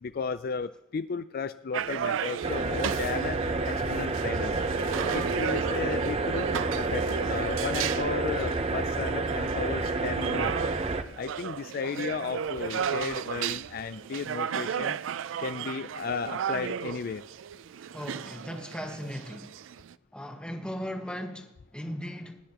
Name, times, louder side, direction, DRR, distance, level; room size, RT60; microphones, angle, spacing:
voice 1, 0.0-4.6 5.1-6.5 6.8-10.6 11.2-15.0 15.4-17.2, left 5 dB, 50° left, 11 dB, 0.4 m, -34 dB
sound 1, 1.7-19.9, right 8 dB, 85° right, 0.4 m, -35 dB
sound 2, 2.4-11.0, right 3 dB, 30° right, 0.7 m, -29 dB
voice 2, 17.9-19.5 20.1-22.4, equal, 5° left, 4 dB, 1.2 m, -37 dB
20.0 x 10.0 x 2.9 m, 0.88 s
head